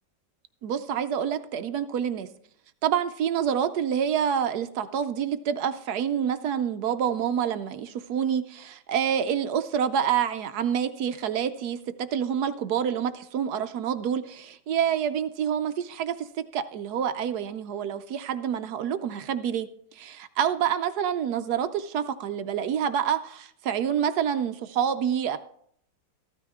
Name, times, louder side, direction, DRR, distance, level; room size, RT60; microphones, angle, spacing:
voice 1, 0.6-2.3 2.8-19.7 20.0-25.4, right 8 dB, 70° right, 10 dB, 1.0 m, -27 dB
14.0 x 12.5 x 3.6 m, 0.66 s
omnidirectional pair, 2.1 m